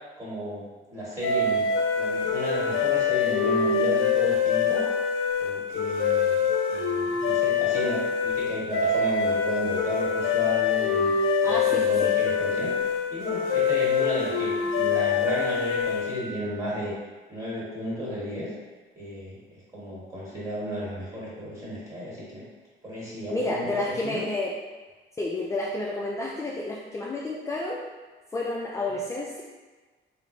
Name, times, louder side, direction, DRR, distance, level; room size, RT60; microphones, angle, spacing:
voice 1, 0.2-0.6 0.9-1.7 1.9-4.8 5.4-11.1 11.4-12.7 13.1-16.9 17.3-18.5 19.0-19.4 19.7-22.4 22.8-24.2, equal, 15° right, -8 dB, 1.5 m, -33 dB
sound 1, 1.2-16.3, left 5 dB, 80° left, 0.4 m, -25 dB
voice 2, 11.4-12.1 23.3-24.6 25.2-27.8 28.3-29.4, left 2 dB, 15° left, -3 dB, 0.3 m, -30 dB
3.6 x 2.0 x 3.1 m, 1.3 s
cardioid pair, 90°, 20 cm